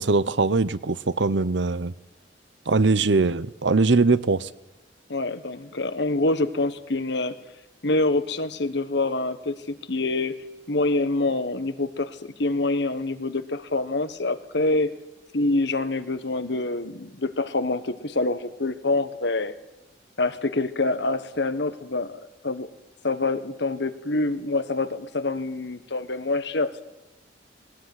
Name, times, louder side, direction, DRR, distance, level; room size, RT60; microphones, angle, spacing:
voice 1, 0.0-1.9 2.7-4.5, right 3 dB, 70° right, 17 dB, 0.9 m, -21 dB
voice 2, 5.1-7.4 7.8-14.9 15.3-19.5 20.2-22.7 23.0-26.8, left 2 dB, 65° left, 11 dB, 1.5 m, -26 dB
20.0 x 18.0 x 9.8 m, 0.99 s
head